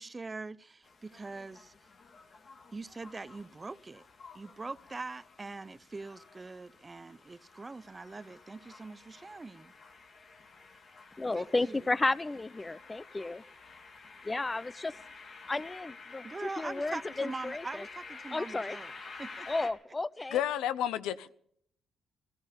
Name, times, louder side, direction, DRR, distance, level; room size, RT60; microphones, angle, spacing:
voice 1, 0.0-1.7 2.7-4.0 4.3-9.7 11.3-11.9 16.2-18.9 19.2-19.5, right 3 dB, 30° right, 0.6 m, -43 dB
sound 1, 0.8-19.7, left 4 dB, 55° left, 2.2 m, -51 dB
voice 2, 11.2-13.4 14.2-14.9 15.5-16.3 16.6-17.9 18.3-18.8 19.5-20.4, left 2 dB, 25° left, 0.6 m, -33 dB
voice 3, 20.3-21.3, left 11 dB, 80° left, 0.6 m, -31 dB
17.0 x 14.5 x 5.2 m
supercardioid pair, 55°, 0 cm